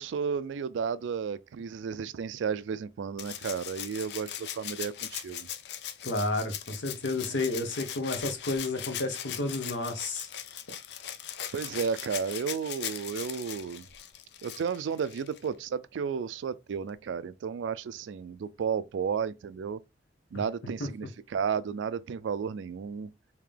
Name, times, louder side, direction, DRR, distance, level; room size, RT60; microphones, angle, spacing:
voice 1, 0.0-5.5 7.2-7.3 11.5-13.9 14.4-19.8 20.3-23.1, right 6 dB, 85° right, 0.3 m, -33 dB
Rattle (instrument), 3.2-15.5 16.9-17.0, left 10 dB, 65° left, 0.4 m, -40 dB
voice 2, 6.0-10.3 20.8-20.9, left 2 dB, 80° left, 0.9 m, -31 dB
3.6 x 2.8 x 3.2 m
head